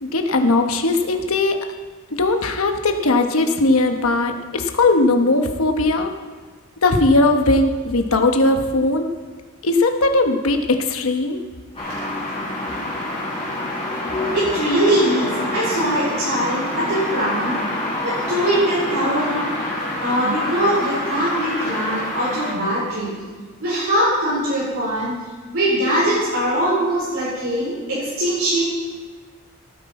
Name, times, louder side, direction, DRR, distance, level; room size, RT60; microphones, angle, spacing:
voice 1, 0.0-1.6 2.1-6.1 6.8-9.1 9.6-11.4, left 2 dB, 70° left, 5 dB, 1.2 m, -18 dB
sound 1, 11.7-22.5, left 1 dB, 25° left, 4.8 m, -27 dB
voice 2, 14.3-17.6 18.0-19.6 20.0-23.2 23.6-25.2 25.5-28.6, right 1 dB, 65° right, -8 dB, 4.0 m, -21 dB
16.5 x 9.5 x 4.3 m, 1.4 s
head